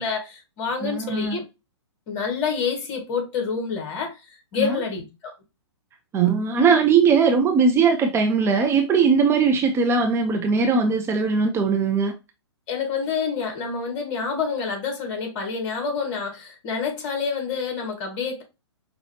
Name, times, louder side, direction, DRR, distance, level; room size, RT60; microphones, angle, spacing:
voice 1, 0.0-1.4 2.1-4.2 4.5-5.3 12.7-18.4, left 5 dB, 40° left, 2.0 m, -28 dB
voice 2, 0.8-1.4 4.6-4.8 6.1-12.1, right 5 dB, 15° right, 0.5 m, -20 dB
5.5 x 2.7 x 2.8 m
figure-of-eight pair, 120°, 15 cm